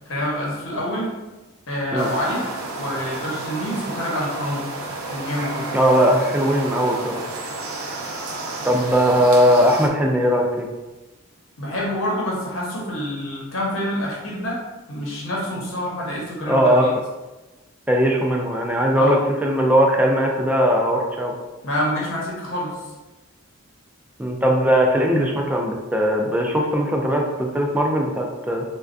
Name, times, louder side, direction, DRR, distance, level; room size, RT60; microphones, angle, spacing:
voice 1, 0.1-1.1 1.7-2.5 2.8-4.7 5.1-5.7 11.6-14.6 14.9-16.9 19.0-19.2 21.6-22.8, left 1 dB, 65° left, -4 dB, 0.9 m, -26 dB
sound 1, 2.0-9.9, right 2 dB, 80° right, 0.6 m, -31 dB
voice 2, 5.7-7.2 8.6-10.7 16.5-16.9 17.9-21.3 24.2-28.6, equal, 5° right, 0 dB, 0.3 m, -19 dB
4.2 x 2.3 x 2.5 m, 1.1 s
head